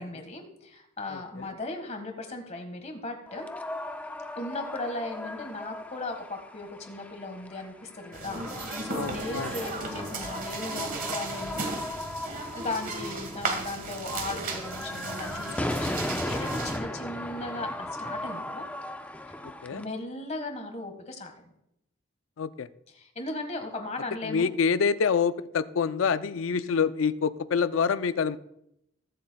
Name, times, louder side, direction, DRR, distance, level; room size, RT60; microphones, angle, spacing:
voice 1, 0.0-3.5 4.4-11.8 12.5-18.7 19.7-21.5 22.9-24.5, left 2 dB, 35° left, 5 dB, 1.5 m, -37 dB
voice 2, 1.1-1.5 8.9-9.5 19.4-19.8 22.4-22.7 24.2-28.4, left 6 dB, 85° left, 14 dB, 0.4 m, -27 dB
sound 1, 3.3-19.8, left 1 dB, 5° left, 0.4 m, -37 dB
sound 2, 8.1-16.8, right 3 dB, 45° right, 1.4 m, -35 dB
21.0 x 7.6 x 2.3 m, 0.79 s
head